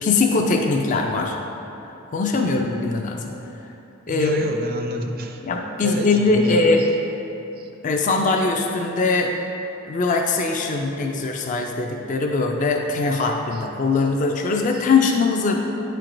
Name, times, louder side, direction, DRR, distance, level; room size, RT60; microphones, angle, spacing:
voice 1, 0.0-1.4 2.1-3.2 4.1-4.3 5.4-6.8 7.8-9.3 9.9-15.6, left 3 dB, 35° left, 2 dB, 0.4 m, -21 dB
voice 2, 2.3-2.6 4.1-5.4 5.8-6.9 7.6-7.7 13.2-13.7 13.9-14.0 14.7-14.9, right 2 dB, 45° right, 4 dB, 0.4 m, -30 dB
9.0 x 4.5 x 2.5 m, 2.9 s
head